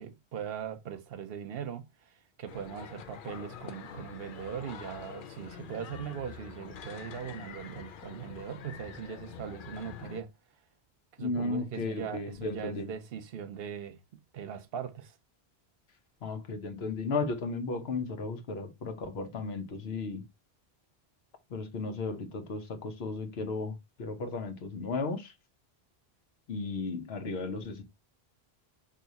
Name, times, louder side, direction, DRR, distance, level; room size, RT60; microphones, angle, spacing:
voice 1, 0.0-10.3 11.2-15.2, right 8 dB, 70° right, 0.8 m, -40 dB
sound 1, 2.5-10.2, left 8 dB, 60° left, 0.7 m, -46 dB
voice 2, 11.2-12.9 16.2-20.2 21.5-25.3 26.5-27.8, left 3 dB, 75° left, 1.1 m, -35 dB
4.8 x 2.7 x 4.0 m
omnidirectional pair, 1.0 m